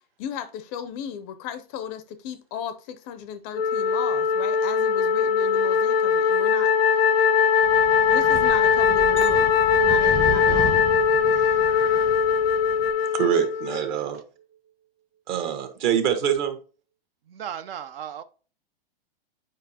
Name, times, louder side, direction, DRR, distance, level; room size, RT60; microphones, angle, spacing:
voice 1, 0.2-6.7 8.1-9.5 9.8-10.8, left 8 dB, 25° left, 0.4 m, -35 dB
Wind instrument woodwind instrument, 3.5-13.9, left 6 dB, 85° left, 0.6 m, -20 dB
Wind, 7.6-12.9, right 2 dB, 15° right, 0.7 m, -35 dB
Chink clink, 9.2-13.5 14.0-14.4, right 9 dB, 30° right, 1.2 m, -38 dB
voice 2, 11.3-11.6 17.3-18.2, right 9 dB, 75° right, 0.6 m, -37 dB
voice 3, 13.1-14.2 15.3-16.6, right 9 dB, 50° right, 1.4 m, -24 dB
8.2 x 5.0 x 2.8 m
hypercardioid pair, 140°, 29 cm